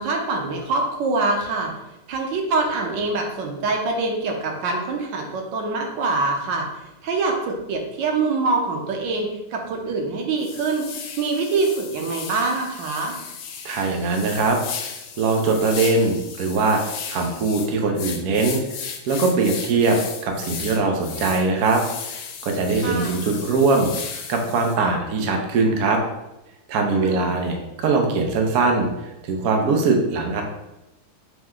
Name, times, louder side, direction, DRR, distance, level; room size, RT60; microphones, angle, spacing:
voice 1, 0.0-1.7 2.1-6.7 7.0-10.8 11.2-13.2 22.8-23.2 26.9-27.3, right 3 dB, 65° right, 2 dB, 1.3 m, -24 dB
sound 1, 9.8-9.9 10.4-24.8, left 6 dB, 80° left, 0.9 m, -35 dB
voice 2, 13.6-14.6 15.2-16.8 17.1-18.8 19.1-21.8 22.4-23.9 24.3-26.0 26.7-28.9 29.2-30.4, right 3 dB, 85° right, 2 dB, 0.8 m, -21 dB
5.8 x 2.2 x 3.7 m, 0.94 s
omnidirectional pair, 2.4 m